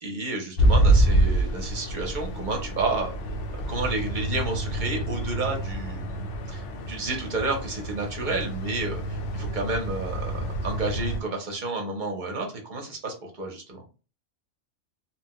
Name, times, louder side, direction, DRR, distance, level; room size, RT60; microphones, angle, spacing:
voice 1, 0.0-3.1 3.7-13.8, right 3 dB, 45° right, 1 dB, 0.8 m, -31 dB
sound 1, 0.6-11.2, right 1 dB, 75° left, 0.9 m, -26 dB
2.9 x 2.1 x 2.9 m, 0.33 s
omnidirectional pair, 1.3 m